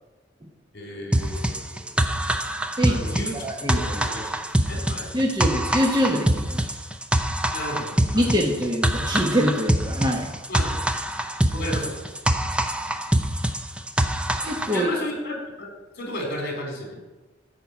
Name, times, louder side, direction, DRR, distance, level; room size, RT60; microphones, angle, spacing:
voice 1, 0.7-1.9 2.8-3.3 3.6-4.3 4.7-5.1 7.5-8.2 10.5-10.7 11.5-12.1 14.7-15.7 16.0-17.0, left 1 dB, 55° left, 0 dB, 4.0 m, -33 dB
sound 1, 1.1-14.8, right 1 dB, 5° right, 0.5 m, -25 dB
voice 2, 3.3-4.0 5.1-6.7 8.1-10.3 14.4-14.9, equal, 20° right, 0 dB, 1.1 m, -24 dB
13.0 x 5.7 x 8.4 m, 1.1 s
head